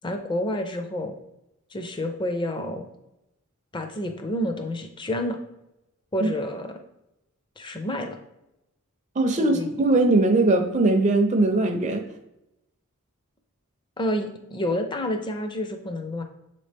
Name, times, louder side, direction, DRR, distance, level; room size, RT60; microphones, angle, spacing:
voice 1, 0.0-1.2 1.7-2.9 3.7-5.4 6.1-6.8 7.6-8.2 9.4-9.7 14.0-16.2, left 1 dB, 20° left, 5 dB, 0.5 m, -29 dB
voice 2, 9.2-12.0, right 2 dB, 30° right, 6 dB, 0.5 m, -20 dB
7.0 x 4.1 x 3.4 m, 0.89 s
head